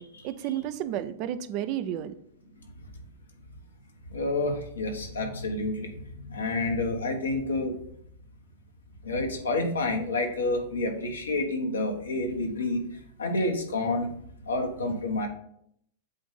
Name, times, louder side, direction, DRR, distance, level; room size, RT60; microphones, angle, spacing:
voice 1, 0.0-2.2, right 11 dB, 45° right, 12 dB, 0.5 m, -32 dB
voice 2, 4.1-5.9 6.2-7.8 9.0-12.8 13.2-14.1 14.4-15.3, left 2 dB, 85° left, 3 dB, 1.3 m, -29 dB
7.9 x 2.6 x 5.4 m, 0.68 s
hypercardioid pair, 105°, 0 cm